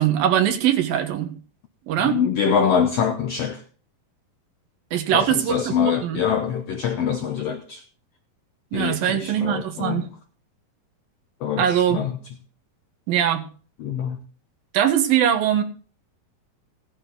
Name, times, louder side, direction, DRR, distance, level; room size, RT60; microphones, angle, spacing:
voice 1, 0.0-1.4 1.9-2.2 4.9-6.2 8.7-10.1 11.6-12.0 13.1-13.5 14.7-15.6, right 10 dB, 80° right, 3.2 m, -21 dB
voice 2, 2.0-3.6 5.1-7.8 8.7-10.1 11.4-12.2 13.8-14.2, left 7 dB, 75° left, 1.4 m, -24 dB
17.0 x 8.9 x 3.9 m
omnidirectional pair, 4.0 m